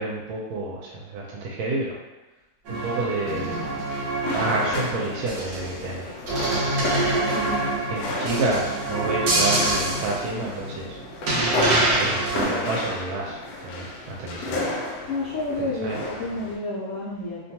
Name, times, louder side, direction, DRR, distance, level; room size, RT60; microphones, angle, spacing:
voice 1, 0.0-2.0 2.7-3.6 4.3-7.1 7.8-11.0 11.9-13.4 13.6-14.7 15.8-16.0, right 2 dB, 90° right, -3 dB, 1.4 m, -29 dB
sound 1, 2.6-5.9 6.3-10.9 11.3-12.4, right 2 dB, 70° right, 1.3 m, -25 dB
sound 2, 3.2-16.5, left 2 dB, 70° left, 1.0 m, -32 dB
voice 2, 15.1-17.5, left 2 dB, 90° left, -8 dB, 0.7 m, -30 dB
3.1 x 2.2 x 2.7 m, 1.1 s
omnidirectional pair, 2.2 m